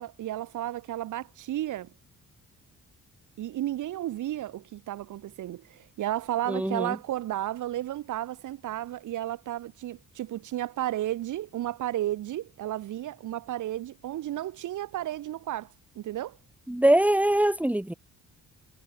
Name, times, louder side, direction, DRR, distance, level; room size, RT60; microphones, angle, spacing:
voice 1, 0.0-1.9 3.4-15.7 16.0-16.4, right 13 dB, 80° right, 5.3 m, -33 dB
voice 2, 6.5-7.0 16.7-17.9, right 1 dB, 5° right, 2.3 m, -23 dB
cardioid pair, 90°, 30 cm